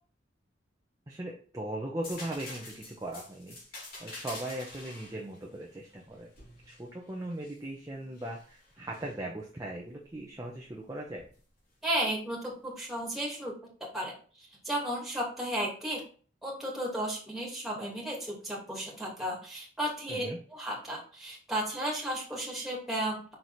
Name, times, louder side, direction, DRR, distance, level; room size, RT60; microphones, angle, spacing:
voice 1, 1.1-3.6 4.0-6.3 6.6-11.2 20.1-20.4, right 1 dB, 20° right, -1 dB, 0.9 m, -39 dB
sound 1, 2.0-7.6 8.2-9.1 11.2-11.4, left 2 dB, 55° left, 3.0 m, -47 dB
voice 2, 11.8-13.5 13.9-14.1 14.4-16.0 16.4-23.3, right 1 dB, ahead, -3 dB, 2.7 m, -34 dB
6.2 x 4.8 x 4.1 m, 0.41 s
head